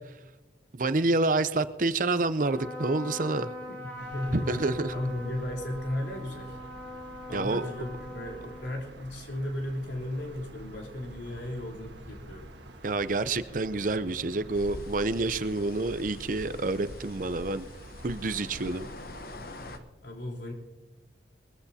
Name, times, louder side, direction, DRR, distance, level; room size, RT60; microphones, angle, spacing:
voice 1, 0.7-3.5 4.3-4.9 7.3-7.6 12.8-17.6 18.0-18.9, right 2 dB, 45° right, 13 dB, 0.6 m, -28 dB
Trumpet, 2.3-9.2, left 1 dB, 10° left, 6.0 m, -42 dB
voice 2, 3.7-4.6 4.9-6.6 7.3-12.5 20.0-20.5, left 1 dB, 75° left, -1 dB, 3.6 m, -35 dB
sound 1, 4.0-19.8, right 1 dB, 80° right, 1.5 m, -48 dB
sound 2, 14.5-19.8, left 2 dB, 55° left, 0.9 m, -44 dB
21.5 x 15.0 x 2.8 m, 1.2 s
head